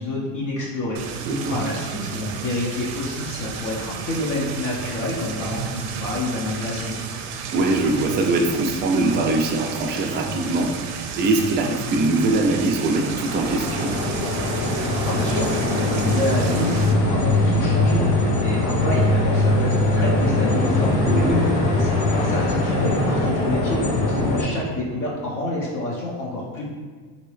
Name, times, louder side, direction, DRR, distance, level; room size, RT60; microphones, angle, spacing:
voice 1, 0.0-6.9 15.0-21.5 21.8-26.6, left 1 dB, 45° left, -4 dB, 0.8 m, -28 dB
sound 1, 0.9-16.9, right 6 dB, 85° right, 0.5 m, -32 dB
voice 2, 1.3-1.6 7.5-13.9 21.1-21.4, right 2 dB, 25° right, 2 dB, 0.3 m, -22 dB
sound 2, 12.9-24.4, left 2 dB, 85° left, 1.0 m, -21 dB
2.9 x 2.8 x 3.2 m, 1.5 s
supercardioid pair, 100°, 44 cm